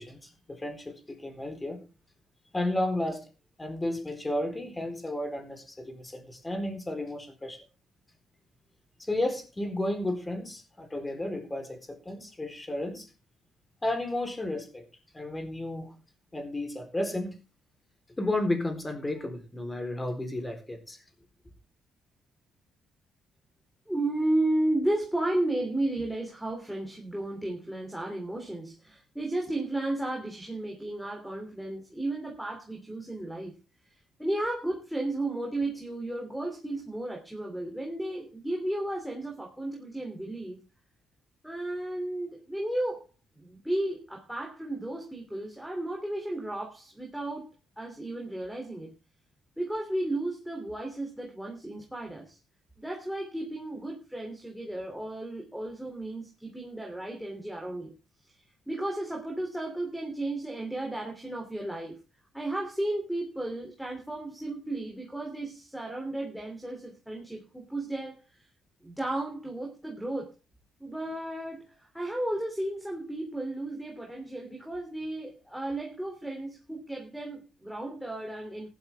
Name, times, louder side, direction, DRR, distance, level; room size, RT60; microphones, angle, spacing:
voice 1, 0.0-1.8 2.5-3.2 3.6-7.6 9.0-13.1 13.8-14.8 15.1-15.9 16.3-17.3 18.2-21.0, left 1 dB, 15° left, 5 dB, 4.0 m, -33 dB
voice 2, 23.9-33.5 34.2-40.6 41.4-43.1 43.3-47.5 47.8-48.9 49.6-52.4 52.8-57.9 58.7-62.0 62.3-68.4 68.8-70.3 70.8-78.7, right 1 dB, ahead, -1 dB, 3.2 m, -33 dB
15.0 x 12.0 x 3.6 m, 0.32 s
cardioid pair, 90°, 0 cm